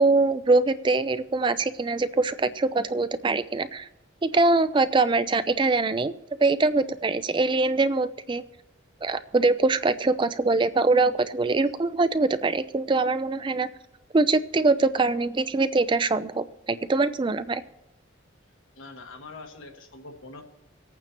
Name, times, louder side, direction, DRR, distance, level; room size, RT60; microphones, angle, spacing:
voice 1, 0.0-3.9 4.2-6.1 6.4-8.4 9.0-13.7 14.1-17.6, right 3 dB, 25° right, 13 dB, 0.3 m, -23 dB
voice 2, 18.8-20.4, left 3 dB, 85° left, 4 dB, 1.5 m, -43 dB
25.5 x 8.8 x 2.9 m, 0.89 s
head